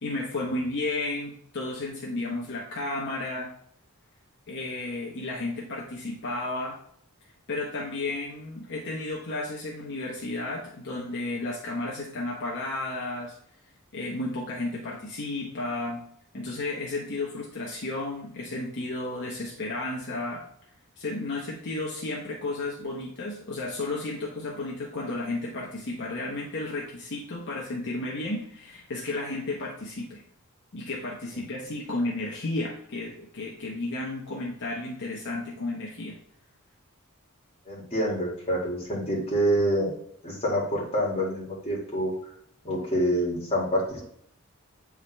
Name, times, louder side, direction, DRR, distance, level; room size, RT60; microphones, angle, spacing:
voice 1, 0.0-3.5 4.5-6.8 7.5-13.3 13.9-16.0 16.3-20.4 21.0-30.2 30.7-36.2, left 2 dB, 55° left, -3 dB, 0.9 m, -33 dB
voice 2, 37.7-39.9 40.2-42.1 42.6-44.0, equal, 30° left, -4 dB, 2.1 m, -27 dB
8.3 x 3.6 x 3.3 m, 0.68 s
head